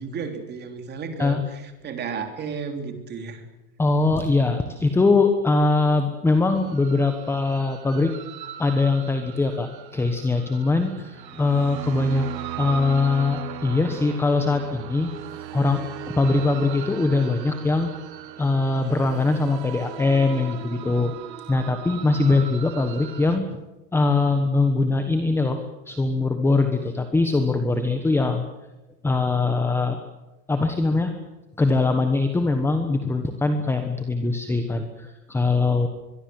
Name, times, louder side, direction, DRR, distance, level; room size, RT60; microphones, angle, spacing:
voice 1, 0.0-3.4, right 5 dB, 20° right, 6 dB, 3.3 m, -33 dB
voice 2, 3.8-8.1 8.6-12.3 12.6-17.9 18.4-21.2 21.5-23.5 23.9-25.6 25.9-28.5 29.0-30.0 30.5-31.1 31.6-35.9, left 3 dB, 5° left, 7 dB, 1.2 m, -22 dB
sound 1, 6.6-23.4, right 11 dB, 90° right, 2.2 m, -38 dB
24.0 x 22.5 x 7.7 m, 1.1 s
supercardioid pair, 155°, 49 cm